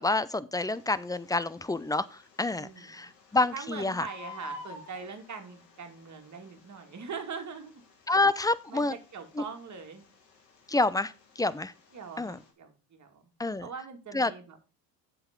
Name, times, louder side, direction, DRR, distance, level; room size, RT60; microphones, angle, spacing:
voice 1, 0.0-4.1 8.1-9.0 9.4-9.5 10.7-11.7 12.2-12.4 13.4-13.7 14.1-14.3, left 2 dB, 10° left, 17 dB, 0.5 m, -28 dB
Bird, 0.7-12.5, left 2 dB, 90° left, 3.0 m, -52 dB
voice 2, 2.6-3.1 3.5-7.7 8.4-10.1 11.9-13.2 13.6-14.7, right 5 dB, 35° right, 5 dB, 2.4 m, -42 dB
7.9 x 6.1 x 5.3 m, 0.32 s
hypercardioid pair, 75°, 48 cm